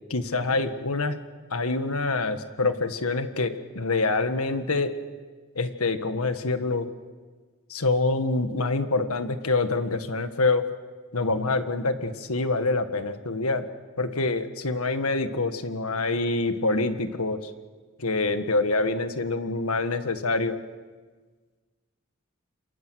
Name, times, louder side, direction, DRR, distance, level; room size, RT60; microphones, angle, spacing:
voice 1, 0.1-1.2 1.5-4.9 5.6-6.9 7.7-10.6 11.1-13.7 14.0-17.5 18.0-20.6, left 3 dB, 90° left, 9 dB, 1.6 m, -26 dB
30.0 x 27.5 x 6.4 m, 1.4 s
head